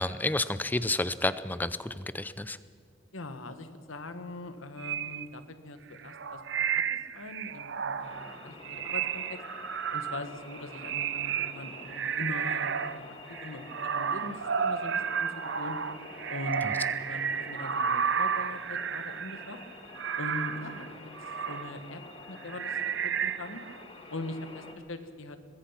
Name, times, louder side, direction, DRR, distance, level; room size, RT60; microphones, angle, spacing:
voice 1, 0.0-2.6 16.6-16.7, left 2 dB, 10° left, 14 dB, 0.5 m, -30 dB
voice 2, 3.1-6.4 6.7-9.4 9.9-15.8 16.3-19.6 20.1-21.0 21.5-22.0 22.3-23.6 24.1-25.4, left 2 dB, 80° left, 9 dB, 1.6 m, -41 dB
sound 1, 4.8-5.3 6.0-13.0 13.3-21.7 22.4-23.8, right 7 dB, 60° right, 0.7 m, -32 dB
sound 2, 8.0-24.7, left 2 dB, 30° left, 1.9 m, -48 dB
22.5 x 20.5 x 5.8 m, 2.2 s
head